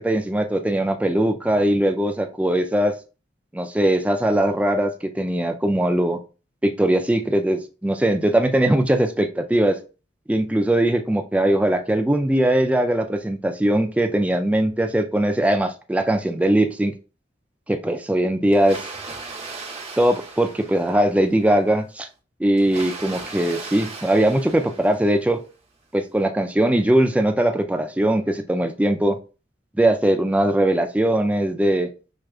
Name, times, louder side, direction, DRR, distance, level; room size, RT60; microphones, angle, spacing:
voice 1, 0.0-2.9 3.5-6.2 6.6-9.8 10.3-16.9 17.7-18.8 20.0-22.1 22.4-25.4 25.9-29.2 29.8-31.9, right 1 dB, 5° right, 5 dB, 0.3 m, -20 dB
Water, 18.5-21.3 22.6-25.4, right 3 dB, 35° right, 1.2 m, -37 dB
6.2 x 2.3 x 2.4 m, 0.33 s
head